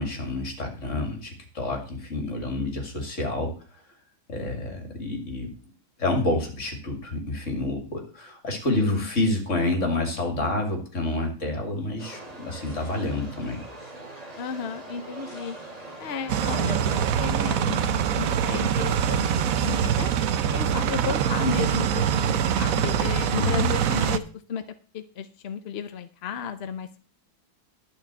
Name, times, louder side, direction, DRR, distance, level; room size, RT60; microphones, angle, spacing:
voice 1, 0.0-3.6 4.3-5.5 6.0-13.6 23.4-23.7, left 2 dB, 40° left, 3 dB, 2.9 m, -28 dB
voice 2, 8.7-9.1 14.4-15.6 16.0-20.1 20.5-24.2 24.5-24.6 24.9-27.0, left 7 dB, 60° left, 10 dB, 0.6 m, -33 dB
sound 1, 12.0-17.9, right 2 dB, 20° right, 2.6 m, -42 dB
sound 2, 16.3-24.2, right 8 dB, 65° right, 0.9 m, -24 dB
11.5 x 5.2 x 8.3 m, 0.40 s
omnidirectional pair, 2.1 m